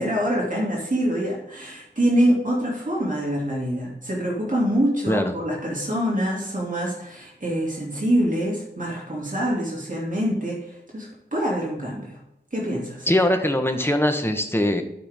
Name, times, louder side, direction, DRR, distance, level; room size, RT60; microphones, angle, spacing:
voice 1, 0.0-12.2 12.5-13.1, equal, 45° right, -4 dB, 2.8 m, -25 dB
voice 2, 13.1-14.8, left 1 dB, 15° left, 6 dB, 1.2 m, -21 dB
12.0 x 6.0 x 3.7 m, 0.85 s
wide cardioid pair, 60°, 18 cm